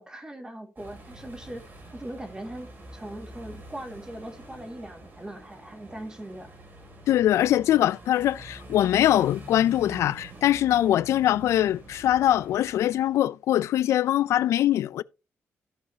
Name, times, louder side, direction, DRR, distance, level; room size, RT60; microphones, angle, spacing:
voice 1, 0.0-1.6 1.9-6.5, right 1 dB, 15° right, 2.0 m, -40 dB
sound 1, 0.8-13.2, right 1 dB, 45° right, 3.9 m, -46 dB
voice 2, 7.1-15.0, left 12 dB, 80° left, 0.4 m, -22 dB
14.0 x 5.5 x 2.8 m
cardioid pair, 110°, 5 cm